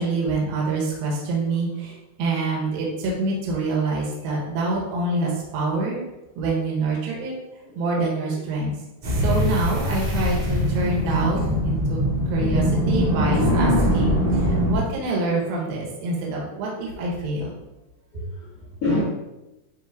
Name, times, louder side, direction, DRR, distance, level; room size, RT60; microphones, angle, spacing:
voice 1, 0.0-6.0 6.4-7.3 7.8-8.8 9.0-12.0 12.3-17.5 18.1-18.2, right 3 dB, 70° right, -3 dB, 3.0 m, -26 dB
sound 1, 9.0-14.8, equal, 15° right, 1.4 m, -22 dB
voice 2, 18.1-19.0, left 2 dB, 80° left, -7 dB, 1.3 m, -28 dB
10.5 x 3.7 x 2.6 m, 0.98 s
omnidirectional pair, 4.5 m